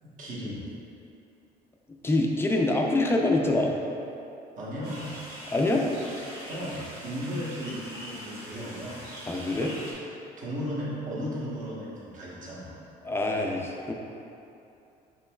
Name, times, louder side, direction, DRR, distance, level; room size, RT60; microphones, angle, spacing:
voice 1, 0.0-0.7 4.6-5.1 6.5-9.1 10.4-12.8, equal, 50° right, -7 dB, 1.1 m, -35 dB
voice 2, 2.0-3.8 5.5-5.9 9.3-9.8 13.0-13.9, left 2 dB, 15° left, 0 dB, 0.4 m, -25 dB
sound 1, 4.8-9.9, right 1 dB, 85° right, 1.2 m, -43 dB
5.3 x 3.0 x 2.3 m, 2.7 s
cardioid pair, 110°, 17 cm